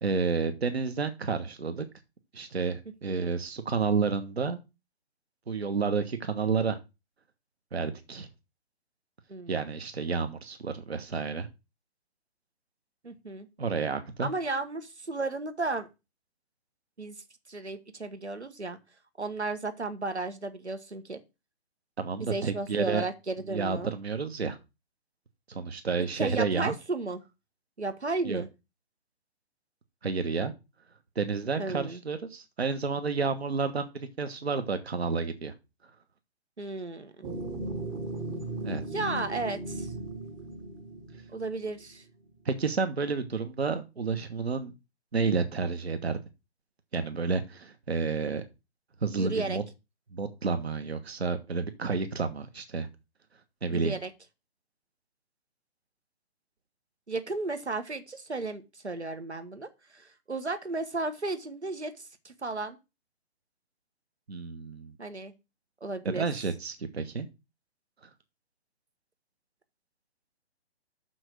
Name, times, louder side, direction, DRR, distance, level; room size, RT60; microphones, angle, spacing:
voice 1, 0.0-1.8 2.3-4.6 5.5-6.8 7.7-8.3 9.5-11.5 13.6-14.3 22.0-23.0 23.5-24.6 25.5-26.7 28.2-28.4 30.0-30.5 31.1-35.5 38.6-38.8 42.4-44.7 45.1-46.2 46.9-48.4 49.0-49.6 50.1-52.9 53.6-53.9 64.3-64.9 66.0-67.3, right 5 dB, 70° right, 9 dB, 1.3 m, -30 dB
voice 2, 9.3-9.6 13.0-13.5 14.2-15.9 17.0-17.1 17.5-18.8 19.2-21.2 22.2-23.9 26.2-27.2 27.8-28.5 31.6-32.0 36.6-37.3 38.8-39.9 41.3-42.0 49.2-49.6 53.7-54.1 57.1-62.8 65.0-65.3 65.8-66.2, right 3 dB, 85° right, 9 dB, 1.4 m, -34 dB
sound 1, 37.2-41.9, right 2 dB, 10° right, 0.7 m, -37 dB
6.5 x 6.2 x 6.0 m, 0.26 s
figure-of-eight pair, 135°, 33 cm